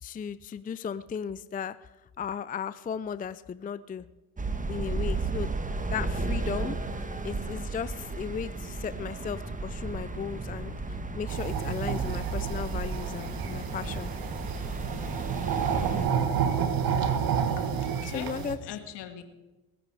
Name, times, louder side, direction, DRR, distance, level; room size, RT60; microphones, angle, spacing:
voice 1, 0.0-1.8 2.2-4.1 4.7-5.5 5.9-6.8 7.2-14.1 18.1-18.6, left 7 dB, 20° left, 15 dB, 0.5 m, -35 dB
sound 1, 4.4-16.1, right 3 dB, 15° right, 1.5 m, -34 dB
sound 2, 11.3-18.5, right 7 dB, 50° right, 1.7 m, -30 dB
voice 2, 17.6-19.2, left 8 dB, 65° left, 7 dB, 2.0 m, -41 dB
20.5 x 8.9 x 5.0 m, 1.1 s
hypercardioid pair, 60°, 45 cm